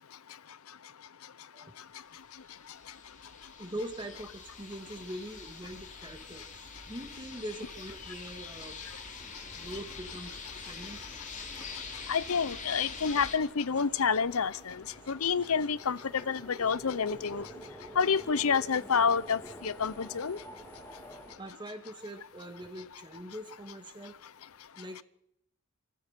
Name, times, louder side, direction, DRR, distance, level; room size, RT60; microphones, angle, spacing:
sound 1, 2.4-13.4, left 4 dB, 35° left, 2.9 m, -45 dB
voice 1, 3.6-6.5 6.9-8.8 9.6-10.4 10.7-11.0 21.4-24.2 24.8-25.0, right 1 dB, 20° right, 2.6 m, -42 dB
sound 2, 8.5-21.3, equal, 10° left, 3.5 m, -50 dB
voice 2, 12.1-17.5 18.0-20.4, left 6 dB, 75° left, 0.7 m, -28 dB
29.0 x 15.0 x 6.1 m
head